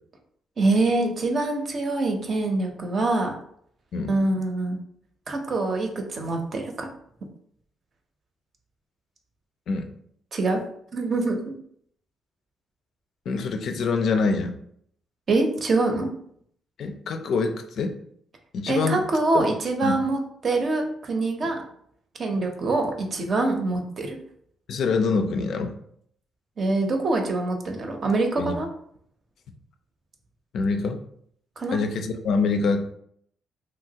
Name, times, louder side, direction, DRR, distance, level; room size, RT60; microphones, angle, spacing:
voice 1, 0.6-3.3 4.1-4.8 5.3-6.9 10.3-10.6 10.9-11.6 15.3-16.1 18.7-21.6 22.2-24.2 26.6-28.7 31.6-31.8, right 2 dB, 45° right, 3 dB, 0.6 m, -24 dB
voice 2, 13.3-14.6 16.8-18.0 18.5-19.1 19.3-19.5 19.8-19.9 22.3-22.4 24.7-25.8 28.4-28.5 30.5-31.0 31.7-32.9, left 4 dB, 65° left, 6 dB, 0.4 m, -25 dB
3.0 x 2.4 x 2.8 m, 0.67 s
cardioid pair, 90°, 0 cm